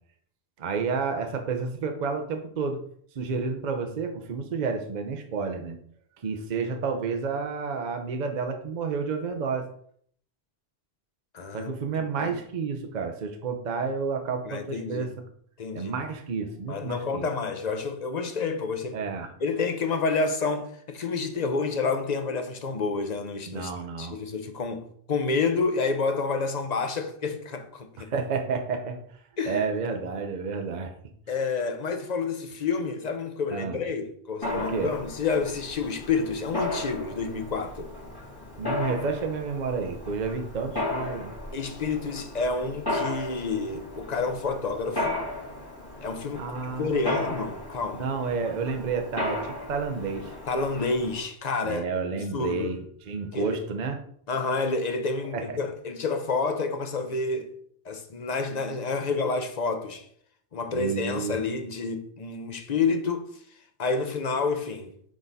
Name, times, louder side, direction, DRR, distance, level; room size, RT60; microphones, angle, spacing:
voice 1, 0.6-2.8 3.2-5.8 6.2-9.7 11.5-15.1 15.7-17.3 18.9-19.3 23.5-24.2 28.1-29.0 29.4-30.9 33.5-33.8 34.5-35.0 38.6-41.3 46.4-47.4 47.9-50.3 51.6-54.0 55.3-55.6 60.7-61.4, right 5 dB, 50° right, 0.8 m, -30 dB
voice 2, 11.3-11.7 12.2-12.3 14.4-15.1 15.6-15.9 16.7-19.0 19.4-23.7 24.0-28.1 29.4-29.6 31.3-37.9 41.5-45.2 46.0-48.1 50.5-51.8 52.3-52.7 53.3-53.6 54.3-57.5 57.8-60.0 60.5-63.3 63.8-64.9, left 4 dB, 45° left, 0.8 m, -29 dB
Mechanisms, 34.4-51.2, left 2 dB, 20° left, 1.9 m, -35 dB
6.2 x 3.7 x 4.0 m
omnidirectional pair, 1.1 m